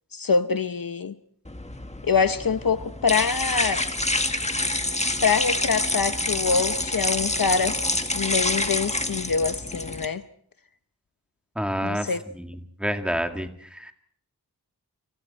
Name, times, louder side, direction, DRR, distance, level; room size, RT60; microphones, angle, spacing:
voice 1, 0.1-1.2 2.0-3.9 5.2-7.8 8.1-10.2 11.8-12.2, left 5 dB, 60° left, 0.9 m, -25 dB
sound 1, 1.5-10.0, left 2 dB, 15° left, 1.7 m, -27 dB
voice 2, 11.6-13.9, equal, 5° right, 2.4 m, -29 dB
30.0 x 27.0 x 4.4 m
wide cardioid pair, 85°, 39 cm